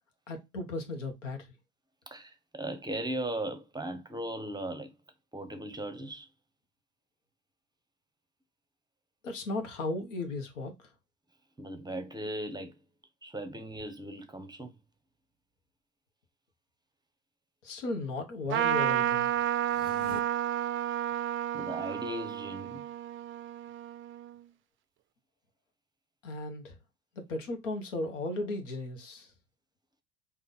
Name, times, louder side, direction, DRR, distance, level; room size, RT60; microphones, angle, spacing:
voice 1, 0.3-1.5 9.2-10.9 17.6-19.3 26.2-26.8 27.1-29.3, left 2 dB, 85° left, 1.2 m, -36 dB
voice 2, 2.1-4.9 5.3-6.3 11.6-12.7 13.2-14.7 21.5-22.8, right 1 dB, 10° right, 0.7 m, -37 dB
Trumpet, 18.5-24.3, right 11 dB, 35° right, 0.4 m, -31 dB
sound 1, 19.6-20.2, left 3 dB, 25° left, 1.0 m, -44 dB
3.3 x 2.6 x 4.0 m
hypercardioid pair, 75°, 37 cm